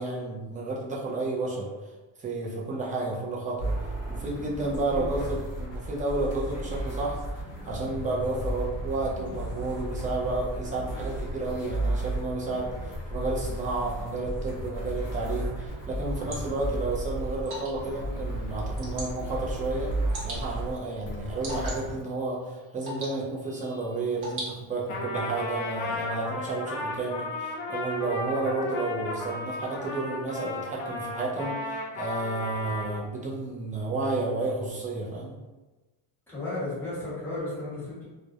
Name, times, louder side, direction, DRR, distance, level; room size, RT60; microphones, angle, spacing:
voice 1, 0.0-1.7 2.2-7.2 7.6-19.9 20.2-35.4, right 2 dB, 20° right, -4 dB, 0.3 m, -31 dB
sound 1, 3.6-21.9, right 1 dB, 35° left, 0.7 m, -34 dB
voice 2, 4.9-5.2 36.3-38.0, left 2 dB, 5° left, -11 dB, 1.0 m, -34 dB
Water / Drip, 15.7-25.0, right 1 dB, 55° right, 0.9 m, -43 dB
Trumpet, 24.9-33.0, left 2 dB, 75° left, 0.8 m, -34 dB
2.3 x 2.0 x 2.7 m, 1.2 s
cardioid pair, 140°, 45 cm